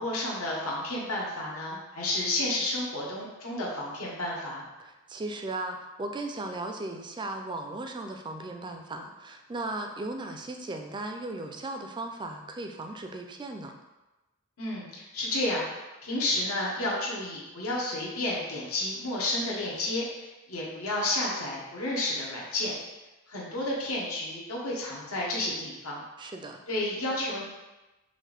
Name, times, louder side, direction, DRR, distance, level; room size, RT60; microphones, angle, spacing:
voice 1, 0.0-4.6 14.6-15.7 16.0-22.7 23.3-26.0 26.7-27.4, left 1 dB, 80° left, -4 dB, 1.2 m, -31 dB
voice 2, 4.8-13.7 26.2-26.6, right 2 dB, 20° right, 4 dB, 0.4 m, -37 dB
5.7 x 2.6 x 3.4 m, 1.1 s
head